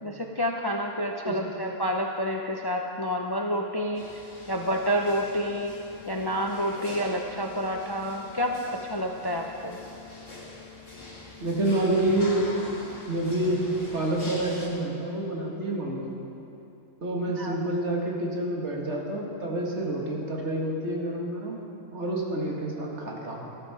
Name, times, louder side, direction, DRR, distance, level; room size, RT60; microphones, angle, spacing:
voice 1, 0.0-4.1 4.5-5.7 6.1-9.8 17.4-17.6, equal, 25° left, 2 dB, 0.5 m, -29 dB
voice 2, 1.2-1.5 11.4-12.5 13.1-13.7 13.9-16.2 17.0-21.6 21.9-23.5, right 1 dB, 65° right, -2 dB, 2.1 m, -28 dB
sound 1, 3.9-14.7, left 2 dB, 50° left, 2.3 m, -44 dB
13.0 x 13.0 x 4.8 m, 2.8 s
omnidirectional pair, 1.3 m